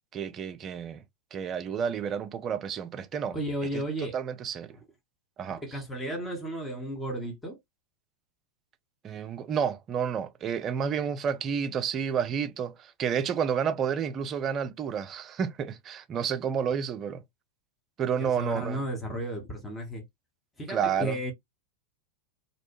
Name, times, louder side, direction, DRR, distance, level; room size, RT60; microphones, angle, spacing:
voice 1, 0.1-1.0 1.3-3.4 3.7-3.8 4.1-4.7 5.4-5.6 9.0-17.2 18.0-18.8 20.7-21.2, right 7 dB, 30° right, 0.4 m, -30 dB
voice 2, 3.3-4.2 4.7-4.8 5.6-7.6 18.1-20.0 20.6-21.3, right 1 dB, 10° left, 0.9 m, -34 dB
2.7 x 2.1 x 2.8 m
figure-of-eight pair, 90°, 0 cm